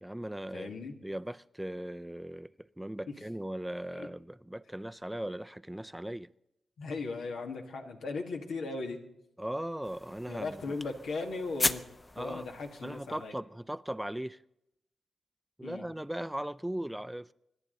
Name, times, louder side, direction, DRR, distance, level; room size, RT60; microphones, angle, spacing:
voice 1, 0.0-0.8 1.0-2.5 2.8-6.3 9.4-10.7 12.2-12.5 12.8-14.4 15.6-17.3, right 1 dB, 10° right, 0.5 m, -38 dB
voice 2, 0.5-0.9 3.1-3.2 3.9-4.1 6.8-9.0 10.3-11.8 12.2-13.3 15.6-15.8, left 3 dB, 85° left, 2.1 m, -37 dB
sound 1, 9.8-13.4, left 2 dB, 30° left, 0.8 m, -37 dB
25.5 x 11.0 x 4.0 m
cardioid pair, 50°, 0 cm